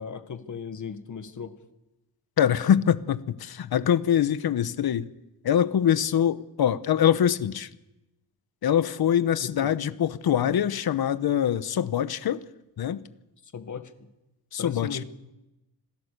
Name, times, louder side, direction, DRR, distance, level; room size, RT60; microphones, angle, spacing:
voice 1, 0.0-1.5 9.4-9.7 13.5-14.1 14.6-15.0, left 6 dB, 45° left, 1.7 m, -37 dB
voice 2, 2.4-5.1 5.4-7.7 8.6-12.4 12.8-13.0 14.5-15.0, left 9 dB, 65° left, 1.0 m, -24 dB
25.5 x 16.5 x 6.8 m
wide cardioid pair, 135°, 40 cm